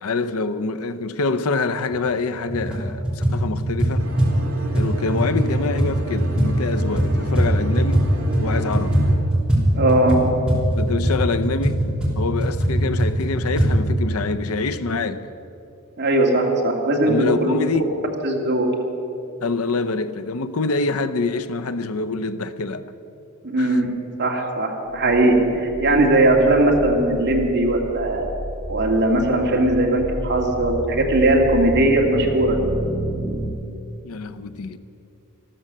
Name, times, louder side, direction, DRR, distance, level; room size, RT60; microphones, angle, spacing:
voice 1, 0.0-4.1 4.7-8.1 8.4-9.0 10.7-11.8 12.2-15.3 17.1-17.9 19.4-22.9 23.6-23.8 24.3-24.4 34.0-34.8, left 3 dB, 75° left, 0.7 m, -25 dB
sound 1, 1.9-2.0 2.4-2.8 3.0-8.1 8.3-13.7, right 1 dB, 5° right, 3.1 m, -21 dB
sound 2, 4.0-9.2, right 1 dB, 70° right, 2.3 m, -34 dB
voice 2, 9.7-10.4 16.0-17.5 18.2-18.7 23.4-23.9 24.2-28.2 28.7-32.7, right 1 dB, 50° right, 2.2 m, -19 dB
sound 3, 25.1-33.5, right 1 dB, 25° right, 1.5 m, -31 dB
14.0 x 13.0 x 6.6 m
head